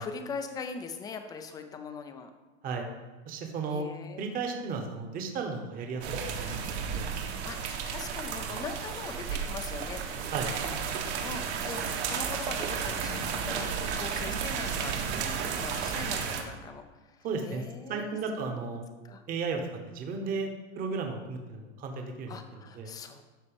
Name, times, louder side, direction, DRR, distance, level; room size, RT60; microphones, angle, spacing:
voice 1, 0.0-2.3 3.7-4.2 7.4-18.6 19.0-19.2 22.3-23.2, left 5 dB, 10° left, 7 dB, 0.4 m, -42 dB
voice 2, 3.3-3.9 4.2-6.0 6.4-7.1 10.3-10.5 17.2-17.6 17.9-18.9 19.3-19.6 19.9-20.5 20.7-22.4 22.7-22.9, right 4 dB, 25° right, 4 dB, 1.0 m, -34 dB
sound 1, 6.0-16.4, right 6 dB, 65° right, 1.6 m, -33 dB
12.0 x 4.1 x 7.0 m, 1.2 s
supercardioid pair, 160°, 36 cm